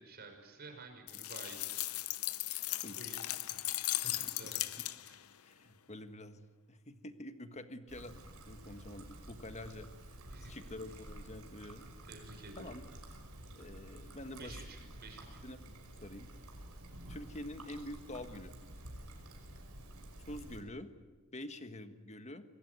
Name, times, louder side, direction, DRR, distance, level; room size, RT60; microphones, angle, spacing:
voice 1, 0.0-1.9 2.9-3.6 3.9-5.2 10.3-11.0 12.0-12.7 14.3-15.4, right 3 dB, 45° right, 4 dB, 5.6 m, -52 dB
sound 1, 1.1-5.3, left 16 dB, 75° left, 0.8 m, -37 dB
voice 2, 5.4-9.9 10.4-11.8 12.6-12.9 13.5-14.5 15.4-15.6 16.0-16.3 17.1-18.5 20.3-20.9 21.3-22.4, left 1 dB, 30° left, 9 dB, 1.5 m, -47 dB
Trickle dribble, 7.9-20.6, right 1 dB, 90° right, 5.6 m, -51 dB
25.5 x 21.5 x 9.4 m, 1.3 s
head